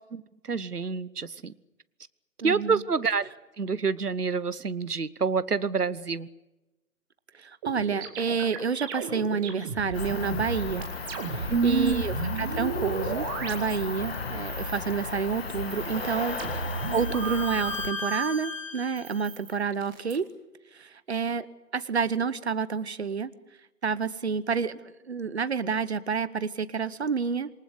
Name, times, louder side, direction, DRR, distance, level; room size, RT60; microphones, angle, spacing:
voice 1, 0.5-1.5 2.4-6.3 11.5-12.0, right 5 dB, 75° right, 17 dB, 1.2 m, -27 dB
voice 2, 2.4-2.8 7.3-10.9 11.3-20.3 20.7-21.5 21.7-23.3 23.8-24.8 25.1-27.5, right 5 dB, 45° right, 16 dB, 1.1 m, -29 dB
sound 1, 7.6-11.6 11.8-14.2 14.5-15.1 15.6-18.3 19.0-20.2, right 5 dB, 15° right, 2.0 m, -35 dB
Cricket, 9.9-17.9, left 4 dB, 40° left, 1.8 m, -35 dB
Bowed string instrument, 15.5-19.3, left 3 dB, 20° left, 1.0 m, -38 dB
27.5 x 19.5 x 8.2 m, 1.0 s
figure-of-eight pair, 150°, 47 cm